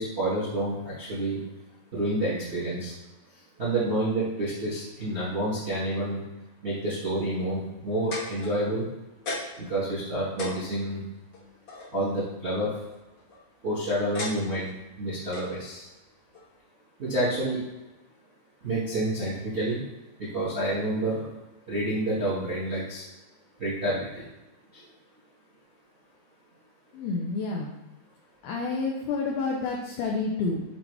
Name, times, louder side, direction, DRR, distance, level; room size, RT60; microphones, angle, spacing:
voice 1, 0.0-1.4 1.9-2.9 3.6-6.2 6.6-8.9 9.6-11.0 11.9-12.7 13.6-14.7 15.0-15.9 17.0-17.6 18.6-19.8 20.2-21.3 21.7-23.0 23.6-24.2 24.7-24.8, right 1 dB, 40° right, -10 dB, 0.9 m, -28 dB
sound 1, 7.7-8.8 9.2-9.7 10.0-10.1 10.4-11.9 13.0-13.4 14.1-14.7 15.3-15.5 16.3-16.5, left 2 dB, 60° left, 1.4 m, -36 dB
voice 2, 26.9-27.7 28.4-30.6, left 3 dB, 85° left, -1 dB, 2.1 m, -29 dB
7.2 x 4.1 x 3.4 m, 1.0 s
omnidirectional pair, 5.1 m